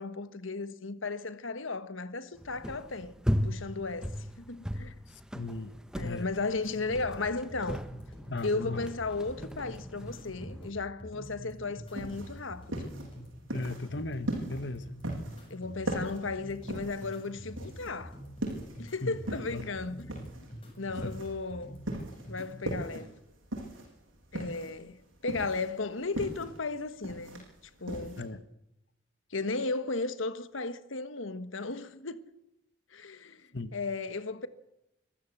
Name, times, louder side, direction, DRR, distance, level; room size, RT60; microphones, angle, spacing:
voice 1, 0.0-3.1 3.4-4.9 5.9-7.8 8.4-12.9 15.5-18.2 18.8-20.1 20.8-21.8 22.3-23.2 24.3-27.5 27.8-28.2 29.3-32.2 32.9-34.5, left 3 dB, 85° left, 1.5 m, -35 dB
sound 1, 2.4-10.7, equal, 5° right, 1.1 m, -37 dB
voice 2, 5.3-6.3 8.3-8.9 13.5-14.9 19.0-19.1 19.5-19.6 21.0-21.2 22.4-22.5 28.2-28.4 33.5-33.8, left 2 dB, 60° left, 1.4 m, -37 dB
sound 2, 6.6-22.6, equal, 25° left, 7.8 m, -47 dB
sound 3, 11.9-28.3, right 1 dB, 85° right, 7.5 m, -39 dB
25.0 x 15.0 x 7.3 m
head